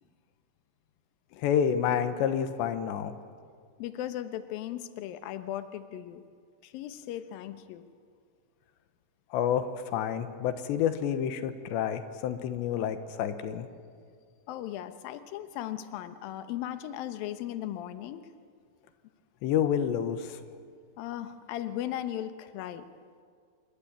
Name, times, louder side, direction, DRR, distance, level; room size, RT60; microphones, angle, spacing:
voice 1, 1.4-3.1 9.3-13.7 19.4-20.4, left 9 dB, 85° left, 10 dB, 3.4 m, -29 dB
voice 2, 3.8-6.2 6.6-7.9 14.5-18.2 21.0-22.9, left 12 dB, 70° left, 10 dB, 2.5 m, -37 dB
27.0 x 22.5 x 8.6 m, 2.1 s
omnidirectional pair, 5.1 m